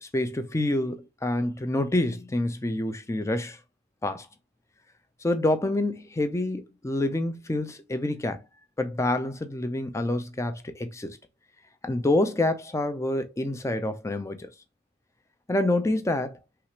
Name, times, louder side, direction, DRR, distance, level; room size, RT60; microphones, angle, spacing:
voice 1, 0.0-3.6 4.0-4.3 5.2-8.4 8.8-11.2 11.8-14.5 15.5-16.4, left 1 dB, 15° left, 0.4 m, -27 dB
5.8 x 2.4 x 3.2 m
head